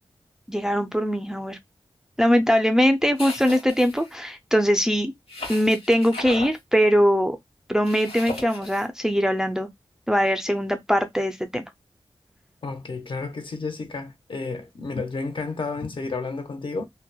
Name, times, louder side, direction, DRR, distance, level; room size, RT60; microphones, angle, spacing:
voice 1, 0.5-1.6 2.2-5.1 5.5-7.4 7.7-9.7 10.1-11.7, equal, 5° right, 0.4 m, -21 dB
sound 1, 3.2-4.1 5.3-6.6 7.8-8.9, left 2 dB, 85° left, 1.3 m, -36 dB
voice 2, 12.6-16.9, left 3 dB, 60° left, 0.6 m, -31 dB
2.8 x 2.1 x 2.2 m
wide cardioid pair, 75°, 10 cm